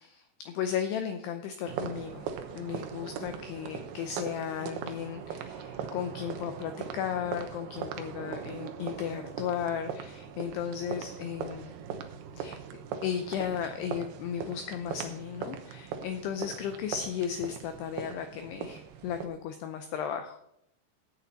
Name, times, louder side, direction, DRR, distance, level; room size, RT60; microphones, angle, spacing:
voice 1, 0.0-2.3 2.5-11.7 12.4-12.6 13.0-20.4, left 8 dB, 80° left, 7 dB, 2.4 m, -35 dB
sound 1, 1.6-19.3, right 7 dB, 75° right, 2.3 m, -40 dB
15.5 x 8.7 x 4.1 m, 0.78 s
omnidirectional pair, 5.7 m